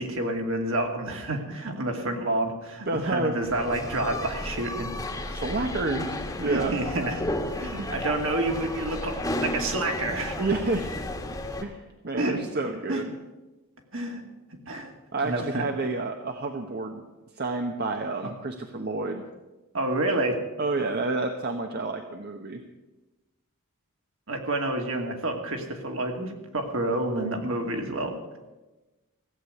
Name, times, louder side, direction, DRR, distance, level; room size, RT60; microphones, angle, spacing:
voice 1, 0.0-4.9 6.4-9.1 9.4-10.4 12.2-12.4 12.9-13.0 13.9-14.2 14.7-14.9 15.2-15.7 19.7-20.4 24.3-28.1, right 1 dB, 65° right, 3 dB, 2.5 m, -29 dB
voice 2, 2.9-3.3 5.3-6.7 7.8-8.0 10.4-10.9 11.6-13.1 15.1-17.0 17.4-19.2 20.6-22.6, right 3 dB, 50° right, 4 dB, 1.0 m, -29 dB
sound 1, 3.4-11.6, left 1 dB, 15° left, 1.5 m, -33 dB
16.0 x 8.2 x 9.4 m, 1.1 s
head